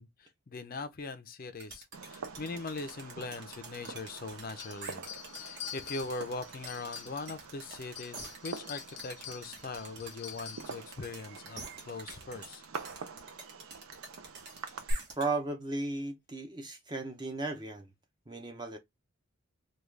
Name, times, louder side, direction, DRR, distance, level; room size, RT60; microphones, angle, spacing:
voice 1, 0.0-5.0 5.4-12.6, left 3 dB, 40° left, 0.5 m, -41 dB
sound 1, 1.6-15.3, right 4 dB, 50° right, 1.1 m, -47 dB
Fireworks, 1.9-14.9, right 4 dB, 70° right, 0.5 m, -46 dB
sound 2, 4.6-7.5 7.8-10.8, left 11 dB, 85° left, 0.7 m, -46 dB
voice 2, 15.2-17.9 18.3-18.8, right 3 dB, 20° right, 0.6 m, -35 dB
3.5 x 2.3 x 3.2 m
head